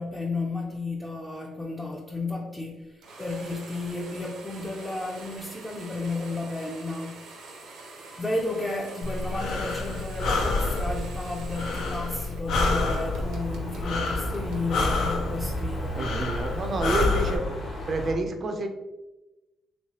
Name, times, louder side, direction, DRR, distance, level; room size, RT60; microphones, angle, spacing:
voice 1, 0.0-7.5 8.2-16.4, left 2 dB, 15° left, -1 dB, 0.5 m, -33 dB
sound 1, 3.0-12.4 12.7-15.2, right 3 dB, 85° right, 0.7 m, -45 dB
Breathing, 9.0-17.4, left 3 dB, 75° left, 0.5 m, -28 dB
sound 2, 12.9-18.1, equal, 55° left, 1.0 m, -35 dB
voice 2, 15.9-17.4 17.9-18.7, right 2 dB, 45° right, 5 dB, 0.4 m, -28 dB
3.1 x 3.1 x 2.8 m, 1.1 s
cardioid pair, 90°, 0 cm